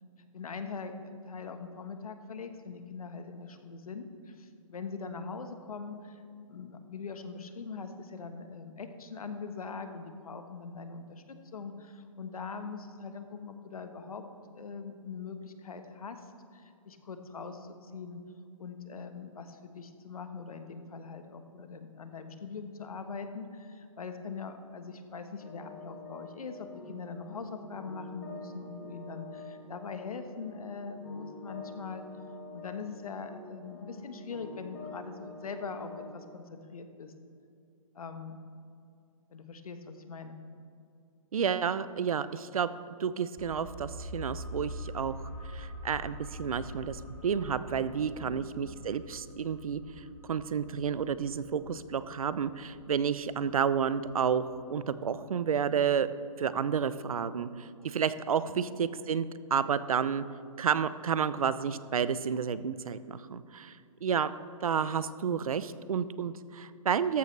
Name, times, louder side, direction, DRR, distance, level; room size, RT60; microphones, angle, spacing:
voice 1, 0.3-6.2 6.5-14.2 14.5-16.2 16.5-18.2 18.6-32.0 32.5-37.1 37.9-38.4 39.3-40.4 48.2-48.6 58.5-58.8 64.9-65.3, left 5 dB, 85° left, 8 dB, 1.3 m, -42 dB
sound 1, 25.4-36.3, left 3 dB, 40° left, 2.8 m, -47 dB
voice 2, 41.3-42.7 43.0-45.2 45.5-56.1 56.4-60.2 60.6-64.3 64.6-67.2, right 7 dB, 75° right, 15 dB, 0.6 m, -31 dB
sound 2, 43.4-54.7 55.0-55.1, equal, 10° left, 0.7 m, -45 dB
14.0 x 11.5 x 3.3 m, 2.4 s
hypercardioid pair, 165°, 18 cm